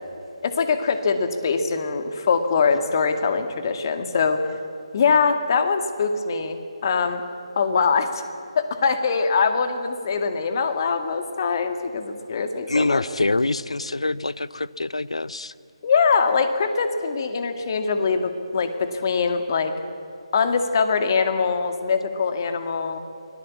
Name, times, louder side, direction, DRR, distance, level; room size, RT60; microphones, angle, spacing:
voice 1, 0.4-4.4 4.9-6.6 6.8-7.2 7.6-8.2 8.6-13.0 15.8-19.7 20.3-23.0, left 5 dB, 40° left, 2.1 m, -23 dB
voice 2, 12.7-15.5, left 2 dB, 80° left, 0.7 m, -25 dB
24.0 x 18.0 x 8.5 m
figure-of-eight pair, 150°, 3 cm